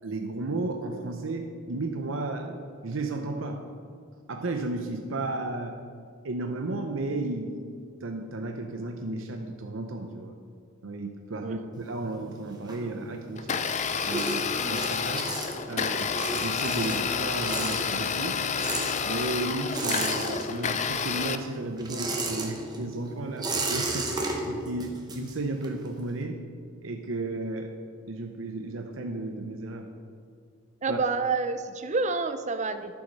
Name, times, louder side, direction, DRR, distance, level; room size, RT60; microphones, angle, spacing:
voice 1, 0.0-3.6 4.3-5.8 6.2-7.7 8.0-10.3 10.8-13.6 14.0-15.3 15.7-18.4 19.0-26.4 26.8-27.7 28.1-29.9 30.9-31.0, right 2 dB, 70° right, 4 dB, 0.7 m, -33 dB
sound 1, 11.7-13.4 13.7-20.9 21.2-25.9, right 2 dB, 20° right, 1.2 m, -34 dB
Domestic sounds home sounds, 13.4-21.4, left 6 dB, 35° left, 0.5 m, -29 dB
voice 2, 30.8-32.9, right 4 dB, 35° right, 10 dB, 0.6 m, -29 dB
12.0 x 7.2 x 5.4 m, 2.2 s
head